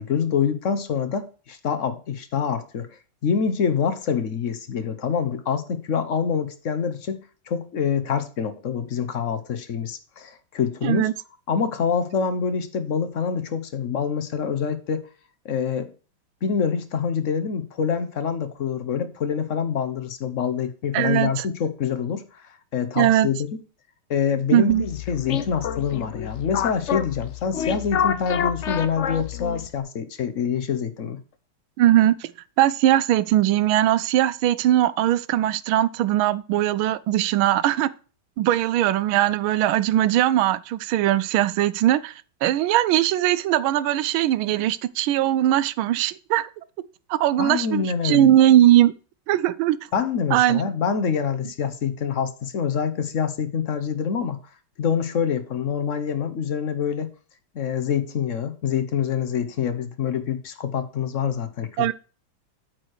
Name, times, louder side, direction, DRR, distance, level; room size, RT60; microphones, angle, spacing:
voice 1, 0.0-7.2 7.5-11.1 11.5-15.1 15.4-15.9 16.4-23.5 24.1-31.2 47.4-48.3 49.9-54.4 54.8-57.1 57.5-61.9, left 7 dB, 55° left, 0.9 m, -26 dB
voice 2, 10.8-11.1 20.9-21.5 23.0-23.3 24.5-24.9 31.8-32.3 32.6-37.9 38.4-42.1 42.4-46.5 47.1-48.9 49.3-49.8 50.3-50.6 61.8-61.9, right 13 dB, 90° right, 1.4 m, -20 dB
sound 1, 24.7-29.8, left 8 dB, 90° left, 0.6 m, -28 dB
8.8 x 4.7 x 6.4 m
omnidirectional pair, 2.2 m